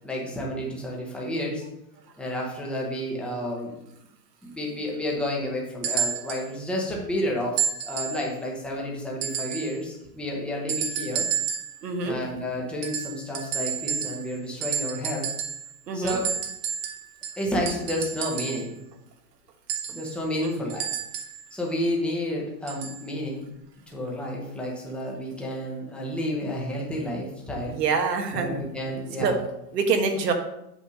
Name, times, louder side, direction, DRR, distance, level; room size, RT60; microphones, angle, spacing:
voice 1, 0.0-1.6 2.2-3.8 4.4-7.6 7.9-11.2 12.0-15.3 15.9-16.3 17.4-18.8 19.9-20.9 21.5-23.5 23.9-27.8 28.3-29.4, left 1 dB, ahead, -3 dB, 0.8 m, -30 dB
sound 1, 5.8-6.5 7.6-8.2 9.2-9.7 10.7-11.8 12.8-14.3 14.6-15.7 16.1-18.7 19.7-21.4 22.7-23.0 23.9-24.0, right 7 dB, 40° right, 1.1 m, -30 dB
voice 2, 11.8-12.2 15.9-16.2 20.4-20.7 27.7-28.6 29.2-29.4 29.7-30.3, right 4 dB, 90° right, 5 dB, 1.5 m, -25 dB
8.4 x 3.5 x 6.4 m, 0.84 s
supercardioid pair, 165°, 47 cm